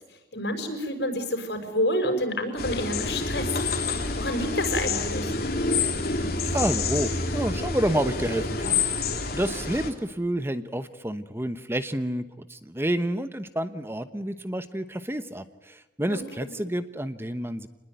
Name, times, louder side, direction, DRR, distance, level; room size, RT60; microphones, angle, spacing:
voice 1, 0.3-3.5 3.8-3.9 4.2-5.4 16.1-16.6, left 1 dB, 75° left, 6 dB, 5.7 m, -29 dB
sound 1, 2.6-9.9, left 3 dB, 55° left, 3.2 m, -28 dB
voice 2, 6.4-8.8 9.3-17.7, right 1 dB, 15° right, 11 dB, 1.0 m, -29 dB
28.0 x 20.5 x 9.3 m, 1.0 s
head